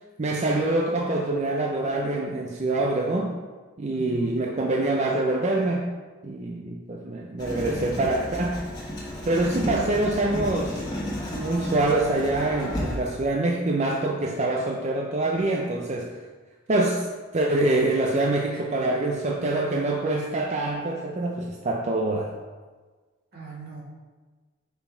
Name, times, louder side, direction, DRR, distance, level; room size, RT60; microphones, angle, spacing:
voice 1, 0.2-3.4 3.8-5.9 6.2-8.6 9.3-10.8 11.3-16.1 16.7-17.1 17.3-22.3, right 2 dB, 35° right, 0 dB, 0.5 m, -25 dB
voice 2, 3.9-4.4 18.5-18.9 23.3-23.8, right 4 dB, 50° right, -5 dB, 1.9 m, -41 dB
Writing, 7.4-12.9, equal, 20° left, 1.4 m, -33 dB
5.6 x 4.4 x 4.5 m, 1.4 s
head